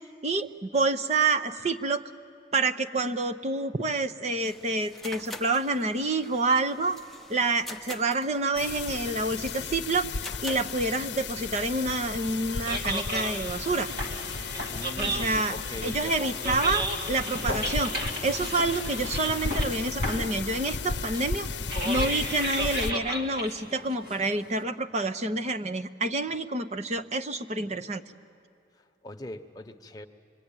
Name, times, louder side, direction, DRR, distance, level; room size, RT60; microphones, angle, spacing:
voice 1, 0.2-2.1 2.5-7.0 7.3-10.1 10.4-13.9 15.0-15.6 15.8-17.9 18.2-21.5 21.8-28.0, right 3 dB, 40° right, 8 dB, 0.8 m, -28 dB
sound 1, 4.4-11.2, left 2 dB, ahead, 0.9 m, -45 dB
sound 2, 8.6-22.9, left 4 dB, 75° left, 0.7 m, -34 dB
sound 3, 12.4-24.6, right 1 dB, 55° right, 2.3 m, -35 dB
voice 2, 14.7-16.3 28.8-30.1, left 1 dB, 20° left, 4 dB, 1.1 m, -41 dB
26.0 x 23.0 x 9.0 m, 2.5 s
head